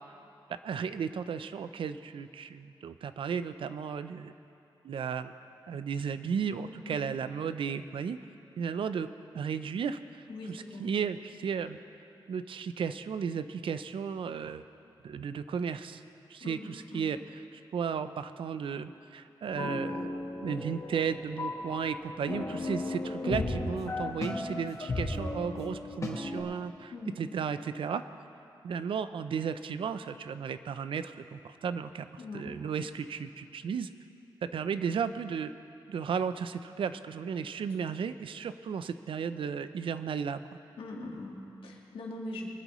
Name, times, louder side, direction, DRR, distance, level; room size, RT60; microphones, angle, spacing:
voice 1, 0.6-4.3 4.8-5.3 5.7-8.2 8.6-11.8 12.3-14.6 15.0-16.0 16.3-20.1 20.4-28.0 28.6-33.9 34.4-35.5 35.9-40.4, right 6 dB, 75° right, 11 dB, 0.5 m, -34 dB
voice 2, 6.5-7.1 10.3-10.9 16.4-17.1 22.5-23.0 26.9-27.2 32.2-32.8 37.9-38.0 40.8-42.5, left 2 dB, 90° left, -1 dB, 1.8 m, -42 dB
sound 1, 19.5-26.4, left 2 dB, 35° left, 1.3 m, -35 dB
22.0 x 12.0 x 3.1 m, 2.7 s
wide cardioid pair, 160°, 9 cm